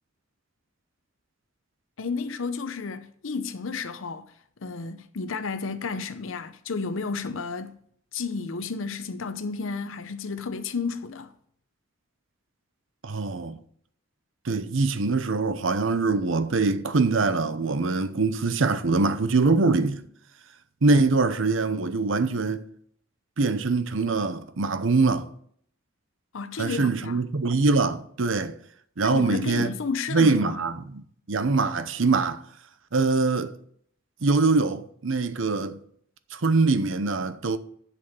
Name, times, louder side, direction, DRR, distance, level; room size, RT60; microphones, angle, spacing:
voice 1, 2.0-4.3 4.6-7.8 8.1-11.3 26.3-27.2 29.0-30.6, left 4 dB, 75° left, 0.6 m, -32 dB
voice 2, 13.0-13.6 14.4-20.0 20.8-22.7 23.4-25.3 26.6-28.6 29.0-29.7 30.1-32.4 32.9-33.5 34.2-35.8 36.3-37.6, right 3 dB, 70° right, 0.7 m, -23 dB
7.8 x 6.2 x 7.0 m
head